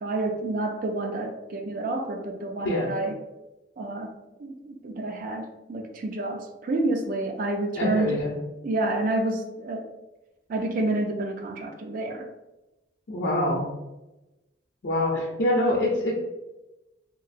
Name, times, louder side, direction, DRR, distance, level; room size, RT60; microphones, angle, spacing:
voice 1, 0.0-3.2 3.8-8.2 8.6-9.9 10.5-12.3, right 2 dB, 45° right, 4 dB, 0.3 m, -29 dB
voice 2, 7.7-8.3 13.1-13.7 14.8-16.2, left 1 dB, 55° left, -8 dB, 0.6 m, -25 dB
3.0 x 2.6 x 2.5 m, 1.0 s
head